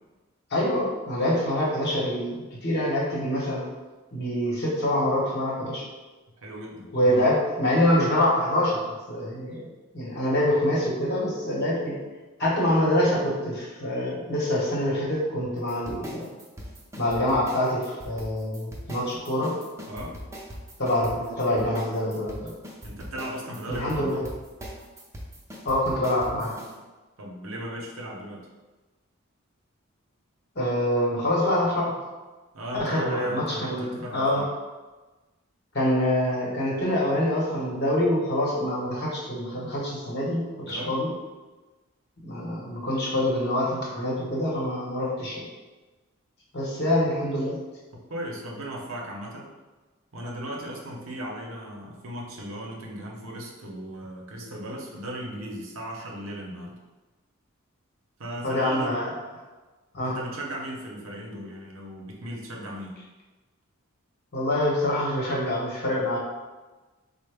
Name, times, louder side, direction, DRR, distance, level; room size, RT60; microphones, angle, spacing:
voice 1, 0.5-2.3 2.6-3.7 4.1-5.9 6.9-9.6 9.9-12.0 12.4-16.3 17.0-19.6 20.8-22.5 23.7-24.3 25.6-26.5 30.5-32.0 32.7-34.5 35.7-41.1 42.2-45.5 46.5-47.6 58.4-59.1 59.9-60.2 64.3-66.2, left 1 dB, 50° left, -4 dB, 1.0 m, -25 dB
voice 2, 6.4-6.9 19.9-20.2 22.8-24.1 27.2-28.5 32.5-34.4 40.7-41.0 47.9-49.5 50.1-56.8 58.2-59.0 60.0-63.0, right 1 dB, 65° right, -1 dB, 0.6 m, -37 dB
sound 1, 15.7-26.7, equal, 15° right, 0.5 m, -41 dB
4.2 x 2.0 x 3.3 m, 1.2 s
head